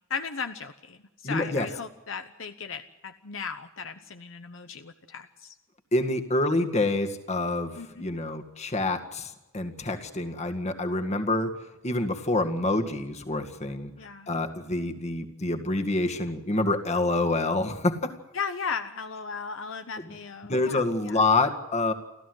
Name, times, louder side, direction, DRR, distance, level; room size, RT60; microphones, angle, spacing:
voice 1, 0.1-5.5 7.8-8.1 14.0-14.3 18.3-21.2, left 5 dB, 65° left, 8 dB, 1.0 m, -36 dB
voice 2, 1.2-1.7 5.9-13.9 14.3-18.2 20.5-21.9, left 2 dB, 35° left, 6 dB, 1.9 m, -27 dB
29.5 x 14.0 x 8.0 m, 1.0 s
head